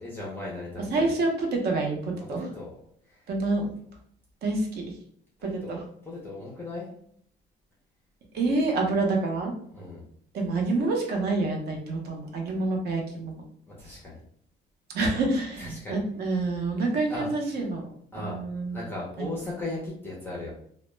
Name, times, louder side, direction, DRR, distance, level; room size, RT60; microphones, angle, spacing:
voice 1, 0.0-1.2 2.2-2.7 3.1-3.2 5.4-6.9 9.7-10.1 13.7-14.2 15.6-16.0 17.1-17.3 18.1-18.4 18.7-20.5, left 2 dB, 10° left, -5 dB, 0.4 m, -37 dB
voice 2, 0.9-2.4 3.3-3.7 4.4-4.7 5.4-5.8 8.3-9.5 10.3-13.4 14.9-17.8 18.1-18.8 19.2-19.3, right 3 dB, 55° right, 1 dB, 0.6 m, -27 dB
2.0 x 2.0 x 3.1 m, 0.65 s
cardioid pair, 155°, 20 cm